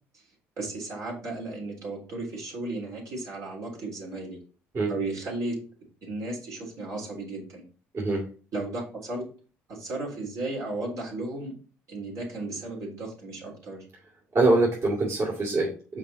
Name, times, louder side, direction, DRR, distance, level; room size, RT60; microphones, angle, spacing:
voice 1, 0.6-4.4 4.9-5.6 6.0-7.6 8.5-9.3 9.7-11.6 11.9-13.8, right 2 dB, 65° right, -2 dB, 3.5 m, -34 dB
voice 2, 14.3-16.0, right 2 dB, 45° right, -3 dB, 2.6 m, -24 dB
5.7 x 4.7 x 4.2 m, 0.38 s
supercardioid pair, 75°, 6 cm